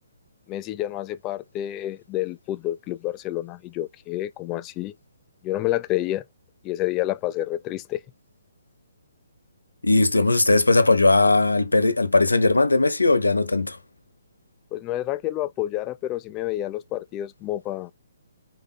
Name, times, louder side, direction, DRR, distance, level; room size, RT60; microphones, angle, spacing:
voice 1, 0.5-4.9 5.4-6.2 6.6-8.0 14.7-17.9, left 14 dB, 25° left, 0.4 m, -29 dB
voice 2, 9.8-13.8, left 2 dB, 85° left, 0.8 m, -19 dB
3.8 x 3.7 x 3.6 m
figure-of-eight pair, 135°, 0 cm